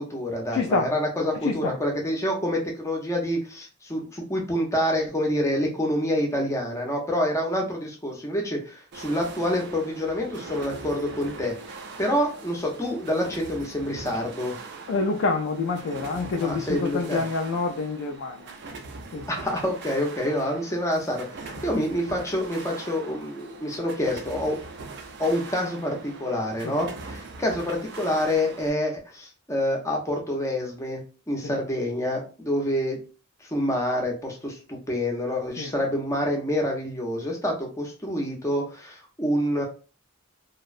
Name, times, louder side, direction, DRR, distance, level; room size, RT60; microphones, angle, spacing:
voice 1, 0.0-14.5 16.4-17.2 19.3-24.6 25.2-31.0 31.3-33.0 33.4-39.6, left 1 dB, 15° left, 0.5 m, -27 dB
voice 2, 0.5-0.9 1.4-1.8 14.9-18.5 19.1-19.3 26.6-26.8 31.4-31.5 35.5-35.7, left 4 dB, 65° left, 0.3 m, -27 dB
sound 1, 8.9-28.7, right 3 dB, 50° right, 0.4 m, -41 dB
2.7 x 2.0 x 2.4 m
head